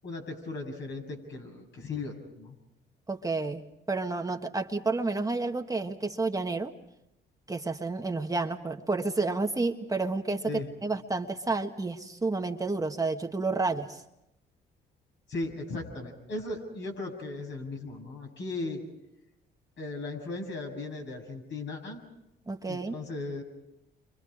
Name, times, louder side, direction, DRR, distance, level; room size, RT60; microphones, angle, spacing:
voice 1, 0.0-2.6 10.5-10.7 15.3-18.8 19.8-22.0 22.7-23.4, left 3 dB, 65° left, 2 dB, 7.1 m, -37 dB
voice 2, 3.1-6.7 7.5-10.5 10.8-14.0 22.5-22.9, right 3 dB, 15° right, 3 dB, 1.4 m, -30 dB
30.0 x 25.0 x 4.9 m, 0.85 s
cardioid pair, 90°, 20 cm